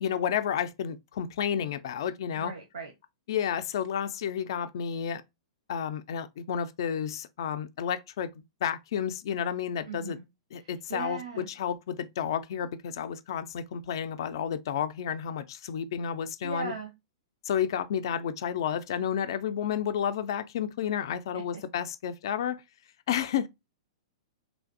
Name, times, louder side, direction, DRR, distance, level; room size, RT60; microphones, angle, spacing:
voice 1, 0.0-2.5 3.3-5.2 5.7-8.3 8.6-10.2 10.5-16.7 17.4-22.6 23.1-23.5, left 8 dB, 60° left, 0.3 m, -31 dB
voice 2, 2.4-2.9 9.9-10.2 10.6-11.5 16.4-16.9 21.3-21.4, right 4 dB, 75° right, 0.8 m, -38 dB
3.2 x 2.5 x 2.4 m
figure-of-eight pair, 105°, 3 cm